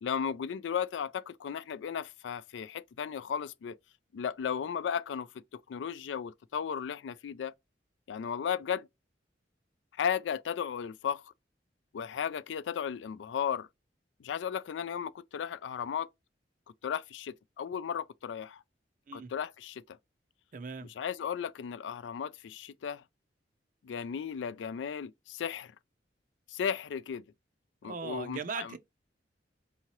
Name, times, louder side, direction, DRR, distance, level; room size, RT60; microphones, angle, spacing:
voice 1, 0.0-3.8 4.1-7.5 8.1-8.9 10.0-11.2 11.9-13.7 14.2-16.1 16.8-18.6 19.1-20.0 21.0-23.0 23.8-25.7 26.5-27.2 27.8-28.7, left 7 dB, 90° left, 0.3 m, -35 dB
voice 2, 20.5-20.9 27.8-28.8, right 5 dB, 50° right, 0.5 m, -39 dB
4.6 x 2.8 x 2.9 m
head